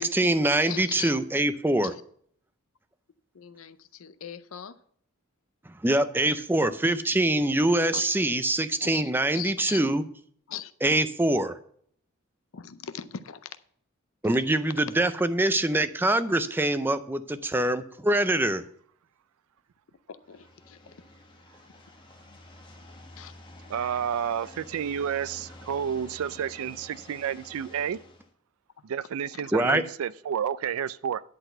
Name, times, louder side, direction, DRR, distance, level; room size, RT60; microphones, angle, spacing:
voice 1, 0.0-1.9 5.8-10.0 10.8-11.6 14.2-18.6 29.5-29.8, right 1 dB, 10° right, 0.4 m, -24 dB
voice 2, 0.7-1.1 1.8-1.9 3.3-4.7 7.9-8.2 8.8-9.8 10.5-10.7 12.5-13.6 14.2-14.3 20.3-20.8 23.2-23.3 29.3-29.5, left 9 dB, 70° left, 0.5 m, -40 dB
sound 1, 20.2-28.3, left 2 dB, 25° left, 1.1 m, -49 dB
voice 3, 23.7-28.0 28.8-31.2, right 8 dB, 75° right, 0.3 m, -30 dB
10.5 x 4.0 x 7.7 m
head